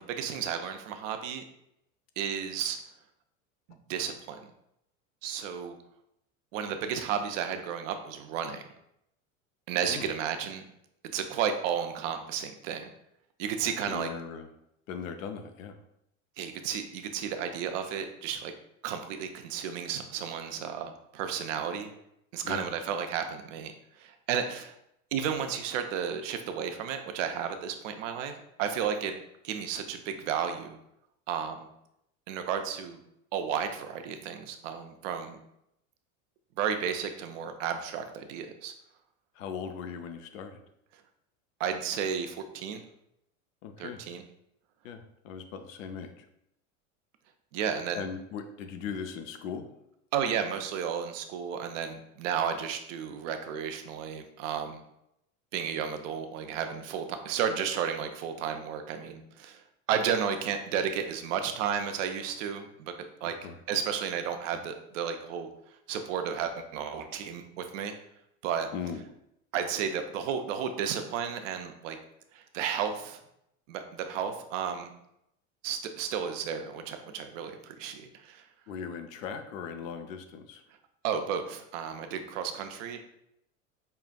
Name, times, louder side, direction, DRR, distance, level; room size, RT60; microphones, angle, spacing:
voice 1, 0.0-1.4 2.2-2.8 3.9-4.4 5.2-5.8 6.5-8.6 9.7-10.6 11.1-12.9 13.4-14.1 16.4-18.5 18.8-21.9 22.3-23.7 24.0-24.7 25.1-29.2 29.4-30.8 31.3-31.7 32.3-33.0 33.3-35.4 36.6-38.7 41.6-42.8 43.8-44.2 47.5-48.0 50.1-54.8 55.5-59.6 59.9-62.9 63.2-63.3 63.7-65.5 65.9-67.9 68.4-68.7 69.5-72.0 72.3-73.2 73.7-74.9 75.6-78.4 81.0-83.0, right 7 dB, 70° right, 7 dB, 0.6 m, -33 dB
voice 2, 13.6-14.5 14.9-15.8 22.4-22.7 39.4-40.6 43.6-44.0 44.8-46.3 47.9-49.7 63.4-63.6 68.7-69.0 78.7-80.6, left 6 dB, 80° left, 7 dB, 0.5 m, -39 dB
5.5 x 2.4 x 2.2 m, 0.79 s
hypercardioid pair, 95°, 39 cm